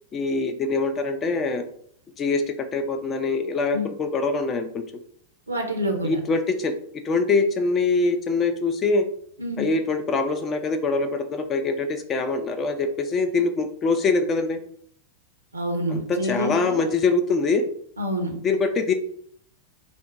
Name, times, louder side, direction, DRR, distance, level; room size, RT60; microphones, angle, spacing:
voice 1, 0.1-1.7 2.2-4.8 6.0-6.7 7.0-9.0 9.6-14.6 15.9-17.6 18.4-18.9, left 3 dB, 25° left, 7 dB, 0.4 m, -24 dB
voice 2, 5.5-6.2 9.4-9.7 15.5-16.8 18.0-18.4, equal, 80° right, 4 dB, 0.6 m, -27 dB
3.4 x 2.1 x 3.8 m, 0.63 s
figure-of-eight pair, 90°, 0 cm